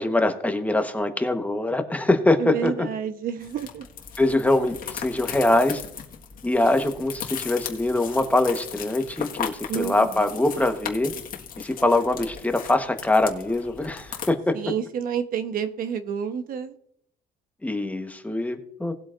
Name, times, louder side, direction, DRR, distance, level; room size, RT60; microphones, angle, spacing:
voice 1, 0.0-2.7 4.2-5.8 6.4-11.1 11.6-14.6 17.6-18.9, left 2 dB, 10° left, 6 dB, 1.2 m, -23 dB
voice 2, 2.4-3.9 9.7-10.3 14.5-16.8, right 8 dB, 60° right, 9 dB, 1.0 m, -29 dB
sound 1, 3.4-14.3, left 8 dB, 55° left, 1.6 m, -37 dB
18.5 x 8.0 x 2.5 m, 0.68 s
cardioid pair, 110°, 17 cm